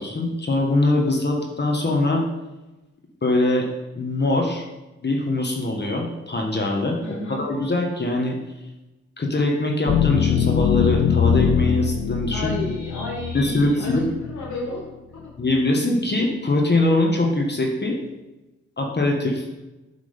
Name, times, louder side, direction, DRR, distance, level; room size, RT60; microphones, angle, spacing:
voice 1, 0.0-2.3 3.2-3.7 3.9-4.6 5.0-7.0 7.3-8.4 9.2-12.5 13.3-14.0 15.4-18.0 18.8-19.4, left 2 dB, 35° left, 1 dB, 1.2 m, -22 dB
voice 2, 7.0-7.4 12.3-14.8 15.1-15.2, left 1 dB, 85° left, -5 dB, 2.5 m, -32 dB
sound 1, 9.9-14.6, left 8 dB, 65° left, 0.7 m, -22 dB
7.8 x 3.6 x 5.0 m, 1.0 s
supercardioid pair, 50°, 29 cm